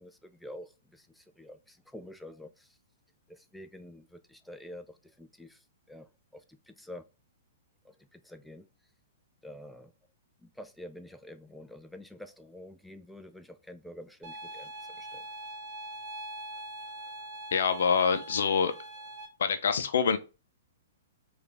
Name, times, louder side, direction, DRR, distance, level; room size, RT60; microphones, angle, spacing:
voice 1, 0.0-2.8 3.3-7.0 7.8-8.7 9.4-9.9 10.4-15.3, left 1 dB, ahead, 0.3 m, -48 dB
sound 1, 14.2-19.3, right 1 dB, 40° right, 1.6 m, -42 dB
voice 2, 17.5-18.7 19.4-20.2, left 6 dB, 65° left, 0.6 m, -25 dB
4.7 x 2.5 x 3.3 m
figure-of-eight pair, 115°, 0 cm